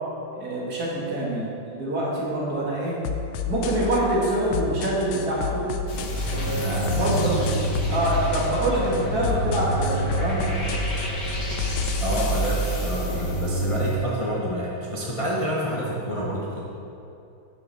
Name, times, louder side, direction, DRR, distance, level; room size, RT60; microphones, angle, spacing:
voice 1, 0.4-3.0 3.5-5.7 6.3-7.3 7.9-10.6, right 1 dB, 45° right, -6 dB, 2.4 m, -25 dB
sound 1, 3.0-12.5, left 5 dB, 80° left, 1.5 m, -31 dB
sound 2, 5.9-13.9, right 1 dB, 50° left, 1.7 m, -27 dB
voice 2, 7.0-7.5 12.0-16.6, equal, 30° left, -5 dB, 0.6 m, -28 dB
9.9 x 7.9 x 4.1 m, 2.7 s
omnidirectional pair, 2.3 m